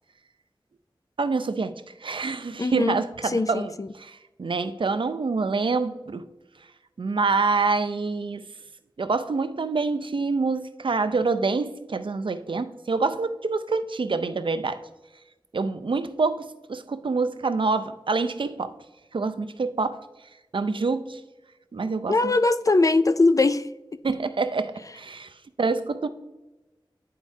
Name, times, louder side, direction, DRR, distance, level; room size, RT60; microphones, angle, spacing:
voice 1, 1.2-6.3 7.0-8.4 9.0-14.8 15.5-18.7 19.1-20.0 20.5-21.2 21.7-22.3 24.0-26.1, right 4 dB, 65° right, 10 dB, 0.5 m, -26 dB
voice 2, 2.6-3.0 3.3-3.7 22.1-23.7, left 3 dB, 40° left, 12 dB, 0.3 m, -21 dB
10.5 x 4.6 x 2.7 m, 1.0 s
wide cardioid pair, 70°, 9 cm